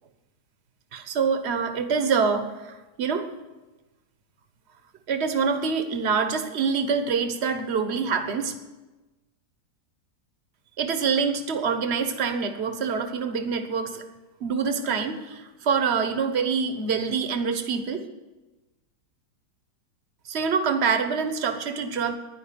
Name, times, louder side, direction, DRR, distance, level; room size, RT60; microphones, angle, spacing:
voice 1, 0.9-3.3 5.1-8.6 10.8-14.0 14.4-18.1 20.3-22.1, right 5 dB, 40° right, 8 dB, 1.2 m, -25 dB
11.0 x 10.5 x 9.5 m, 1.1 s
omnidirectional pair, 1.9 m